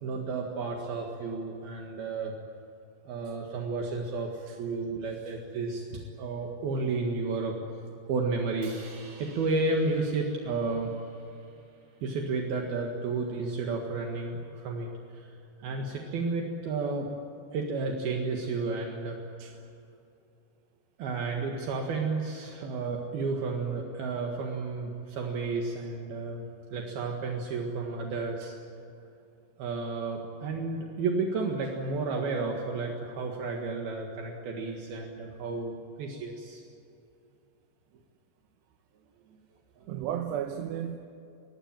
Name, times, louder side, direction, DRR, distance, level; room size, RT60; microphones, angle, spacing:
voice 1, 0.0-2.4 3.1-7.6 8.1-10.9 12.0-17.1 17.5-19.2 21.0-26.5 26.7-28.6 29.6-36.6 39.8-39.9, right 3 dB, 65° right, 1 dB, 3.6 m, -32 dB
Crash cymbal, 8.6-12.8, right 3 dB, 45° right, 4.2 m, -55 dB
voice 2, 39.9-41.0, right 10 dB, 90° right, 5 dB, 3.2 m, -33 dB
25.0 x 19.0 x 9.1 m, 2.7 s
omnidirectional pair, 4.8 m